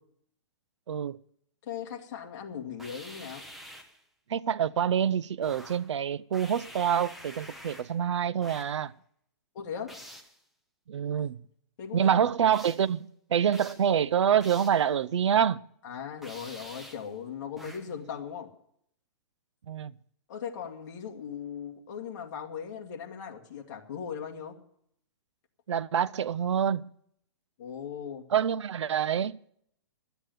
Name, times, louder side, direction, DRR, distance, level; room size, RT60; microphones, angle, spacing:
voice 1, 0.9-1.2 4.3-8.9 10.9-11.4 11.9-15.6 19.7-19.9 25.7-26.9 28.3-29.4, right 8 dB, 85° right, 0.6 m, -26 dB
voice 2, 1.6-3.4 9.5-9.9 11.8-12.3 15.8-18.5 20.3-24.6 27.6-28.3, left 7 dB, 40° left, 2.0 m, -38 dB
sound 1, 2.8-4.0 5.4-5.9 6.3-8.0 8.4-8.8 9.9-10.4 12.5-12.9 13.5-13.9 14.4-14.9 16.2-17.1 17.6-18.0, equal, ahead, 0.9 m, -47 dB
12.5 x 8.1 x 9.2 m
hypercardioid pair, 165°, 15 cm